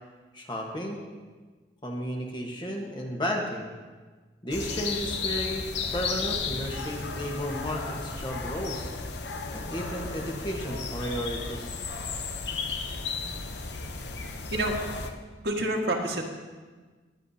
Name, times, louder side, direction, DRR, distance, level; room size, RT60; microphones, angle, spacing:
voice 1, 0.3-1.0 1.8-3.7 4.4-5.7 5.9-8.9 9.5-11.8, equal, 25° left, 0 dB, 1.4 m, -33 dB
sound 1, 4.5-15.1, left 4 dB, 85° left, 0.9 m, -34 dB
voice 2, 15.4-16.2, right 1 dB, 70° right, 0 dB, 1.8 m, -27 dB
20.0 x 9.6 x 2.8 m, 1.4 s
head